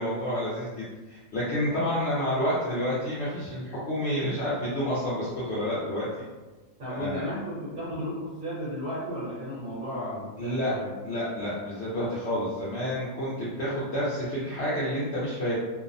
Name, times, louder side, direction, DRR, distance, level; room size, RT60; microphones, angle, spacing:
voice 1, 0.0-6.1 6.9-7.3 10.4-10.7 11.0-15.6, equal, 65° left, -8 dB, 0.7 m, -29 dB
voice 2, 6.8-10.9, equal, 60° right, -9 dB, 1.0 m, -34 dB
2.6 x 2.0 x 2.5 m, 1.2 s
omnidirectional pair, 1.5 m